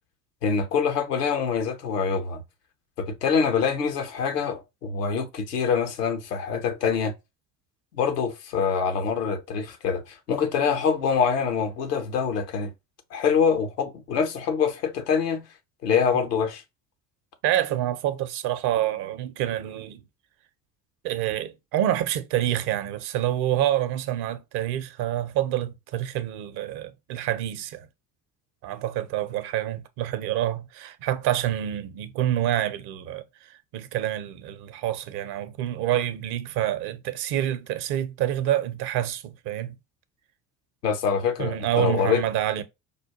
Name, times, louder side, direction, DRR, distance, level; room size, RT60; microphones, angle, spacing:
voice 1, 0.4-2.4 3.0-7.1 7.9-12.7 13.1-15.4 15.8-16.6 40.8-42.2, left 6 dB, 80° left, 0.8 m, -25 dB
voice 2, 17.4-20.0 21.0-27.9 28.6-33.2 33.7-39.8 41.4-42.6, right 12 dB, 55° right, 0.7 m, -27 dB
5.1 x 2.2 x 2.7 m
figure-of-eight pair, 55°, 47 cm